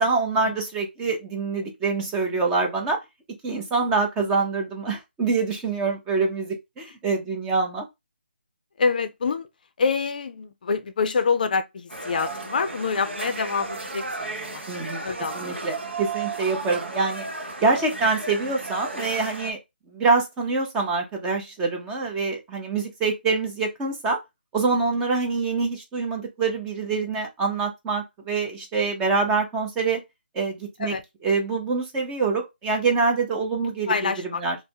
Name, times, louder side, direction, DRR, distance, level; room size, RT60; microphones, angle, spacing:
voice 1, 0.0-3.0 3.4-7.9 14.7-15.0 15.3-17.2 17.6-19.6 19.9-24.2 24.5-30.0 30.3-30.9 31.2-34.1 34.4-34.6, right 4 dB, 10° right, 0.5 m, -25 dB
voice 2, 8.8-9.5 9.8-14.6 15.0-15.6 30.8-31.0 33.9-34.4, left 5 dB, 50° left, 0.4 m, -26 dB
sound 1, 11.9-19.5, right 3 dB, 80° right, 0.9 m, -34 dB
3.3 x 2.1 x 2.7 m
figure-of-eight pair, 155°, 6 cm